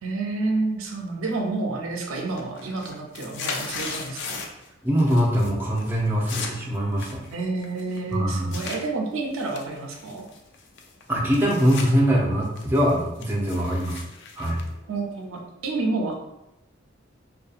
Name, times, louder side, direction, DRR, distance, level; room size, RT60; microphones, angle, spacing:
voice 1, 0.0-4.4 7.3-10.2 14.9-16.1, right 3 dB, 90° right, 0 dB, 0.5 m, -29 dB
sound 1, 1.2-1.7 2.0-4.7 5.0-5.5 5.8-8.8 9.3-11.9 12.3-15.4, left 4 dB, 60° left, 0.4 m, -37 dB
voice 2, 4.8-7.2 8.1-8.5 11.1-14.1 14.4-14.6, equal, 10° right, -3 dB, 0.4 m, -22 dB
2.6 x 2.2 x 2.4 m, 0.90 s
head